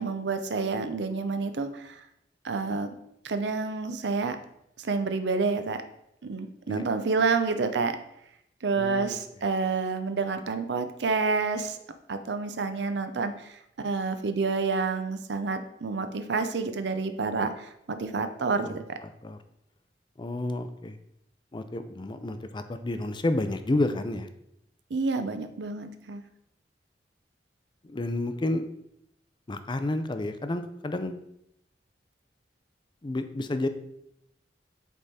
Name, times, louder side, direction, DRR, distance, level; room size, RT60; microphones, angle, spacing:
voice 1, 0.0-2.0 2.4-3.0 3.2-4.4 4.8-5.8 6.2-8.0 8.6-11.8 12.1-18.8 24.9-26.2, right 4 dB, 80° right, 8 dB, 0.6 m, -29 dB
voice 2, 8.8-9.2 18.6-18.7 19.2-19.4 20.2-21.0 21.5-24.3 27.8-28.7 29.5-31.2 33.0-33.7, left 2 dB, 25° left, 10 dB, 0.5 m, -30 dB
8.3 x 3.6 x 4.2 m, 0.78 s
head